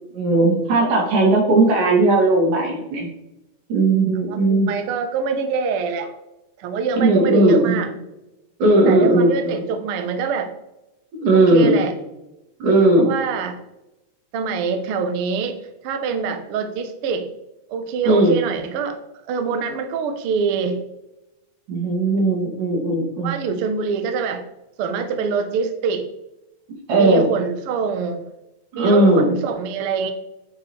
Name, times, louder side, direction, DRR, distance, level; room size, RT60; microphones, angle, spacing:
voice 1, 0.1-3.1 3.7-4.7 7.0-7.8 8.6-9.5 11.2-11.8 12.6-13.1 18.0-18.4 21.7-23.3 26.9-27.3 28.7-29.3, right 2 dB, 90° right, -2 dB, 3.8 m, -17 dB
voice 2, 4.2-6.1 6.6-7.9 8.9-10.5 11.3-11.9 13.0-13.6 14.3-15.6 15.8-17.3 17.7-19.0 19.3-20.8 23.2-24.4 24.8-26.0 27.0-28.2 28.7-30.1, right 5 dB, 70° right, 7 dB, 1.3 m, -24 dB
9.6 x 5.1 x 3.2 m, 0.90 s
omnidirectional pair, 3.5 m